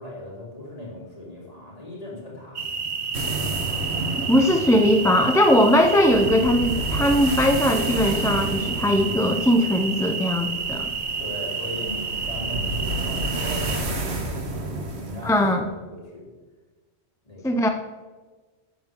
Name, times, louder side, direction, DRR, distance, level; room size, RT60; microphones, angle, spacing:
voice 1, 0.0-2.7 11.2-14.4 14.9-16.3 17.2-17.7, left 1 dB, 35° left, -7 dB, 4.2 m, -38 dB
sound 1, 2.6-13.8, right 5 dB, 55° right, 1.0 m, -30 dB
sound 2, 3.1-15.5, right 2 dB, 75° right, 1.7 m, -31 dB
voice 2, 4.3-10.9 15.2-15.7 17.4-17.7, equal, 5° left, 5 dB, 0.3 m, -20 dB
14.0 x 9.4 x 3.7 m, 1.3 s
omnidirectional pair, 1.1 m